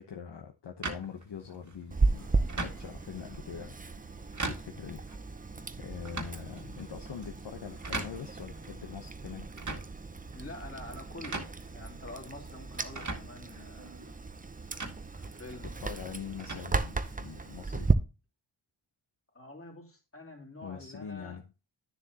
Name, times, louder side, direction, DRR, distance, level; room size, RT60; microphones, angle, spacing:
voice 1, 0.0-9.5 15.6-17.9 20.6-21.4, left 7 dB, 55° left, 1.0 m, -44 dB
sound 1, 0.8-17.5, right 3 dB, 35° right, 1.9 m, -43 dB
Chewing mastication, 1.9-17.9, right 3 dB, 15° right, 0.7 m, -35 dB
voice 2, 10.3-14.2 15.1-15.9 19.3-21.4, left 2 dB, 25° left, 2.8 m, -47 dB
9.7 x 7.0 x 2.9 m
cardioid pair, 60°, 49 cm